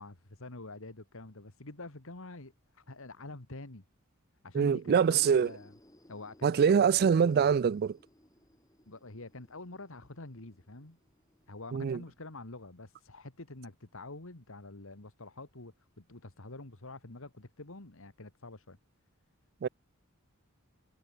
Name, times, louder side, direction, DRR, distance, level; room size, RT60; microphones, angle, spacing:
voice 1, 0.0-3.8 4.4-5.7 6.1-7.5 8.9-11.0 11.5-18.8, left 2 dB, 65° left, 2.2 m, -47 dB
voice 2, 4.5-5.5 6.4-8.0 11.7-12.0 19.6-19.7, right 7 dB, 45° right, 0.3 m, -24 dB
sound 1, 4.8-12.4, left 1 dB, 15° left, 5.8 m, -62 dB
head